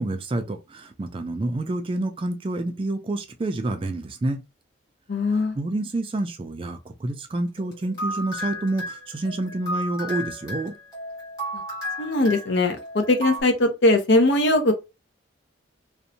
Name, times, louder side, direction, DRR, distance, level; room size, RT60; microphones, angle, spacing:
voice 1, 0.0-4.4 5.6-10.7, right 2 dB, 25° right, 0.3 m, -28 dB
voice 2, 5.1-5.5 12.0-14.7, left 2 dB, 65° left, 0.6 m, -20 dB
sound 1, 7.6-13.4, equal, 20° left, 1.4 m, -33 dB
2.6 x 2.1 x 2.7 m
head